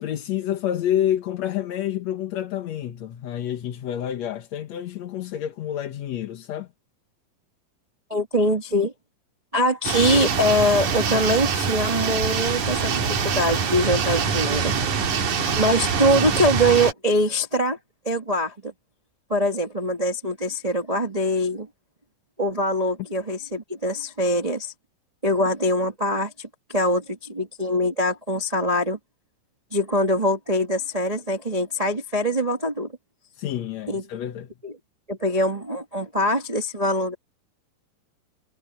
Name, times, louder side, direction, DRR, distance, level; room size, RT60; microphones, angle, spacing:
voice 1, 0.0-6.7 33.3-34.5, left 11 dB, 60° left, 2.1 m, -28 dB
voice 2, 8.1-8.9 9.5-14.8 15.5-17.8 18.0-18.7 19.3-21.7 22.4-24.7 25.2-29.0 29.7-32.9 33.9-34.0 34.6-34.7 35.1-37.1, equal, 20° right, 1.1 m, -23 dB
sound 1, 9.8-16.9, right 6 dB, 60° right, 3.8 m, -24 dB
omnidirectional pair, 3.9 m